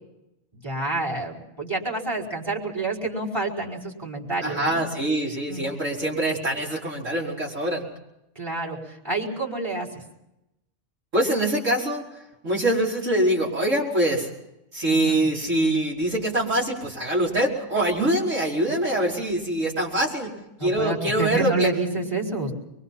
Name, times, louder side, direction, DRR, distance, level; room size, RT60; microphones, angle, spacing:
voice 1, 0.5-4.8 5.5-5.7 8.3-10.0 14.9-15.3 20.6-22.5, right 2 dB, 20° right, -2 dB, 5.1 m, -28 dB
voice 2, 4.4-7.8 11.1-12.0 12.4-14.3 14.7-20.3 20.6-21.7, right 1 dB, 80° right, -3 dB, 5.4 m, -24 dB
23.5 x 23.5 x 5.7 m, 0.88 s
omnidirectional pair, 1.3 m